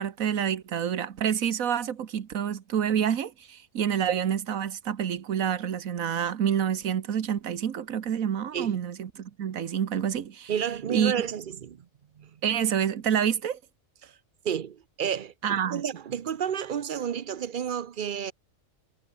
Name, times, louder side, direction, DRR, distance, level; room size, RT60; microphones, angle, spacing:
voice 1, 0.0-10.5 10.9-11.1 12.4-13.6 15.4-15.8, right 8 dB, 85° right, 1.6 m, -28 dB
voice 2, 10.5-11.9 12.2-12.4 14.0-14.2 14.4-18.3, right 8 dB, 50° right, 0.7 m, -31 dB
omnidirectional pair, 1.4 m